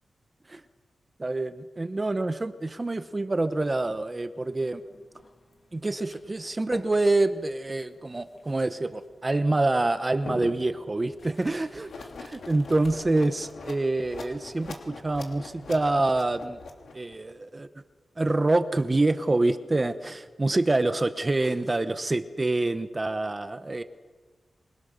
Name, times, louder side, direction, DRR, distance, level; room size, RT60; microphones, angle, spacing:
voice 1, 1.2-4.8 5.7-11.9 12.2-16.6 16.9-17.7 18.2-23.8, right 2 dB, 25° right, 11 dB, 1.0 m, -26 dB
sound 1, 3.5-13.2, left 3 dB, 50° left, 2.7 m, -47 dB
sound 2, 11.9-17.1, left 4 dB, 75° left, 2.9 m, -43 dB
26.5 x 21.5 x 6.7 m, 1.4 s
wide cardioid pair, 135°, 0 cm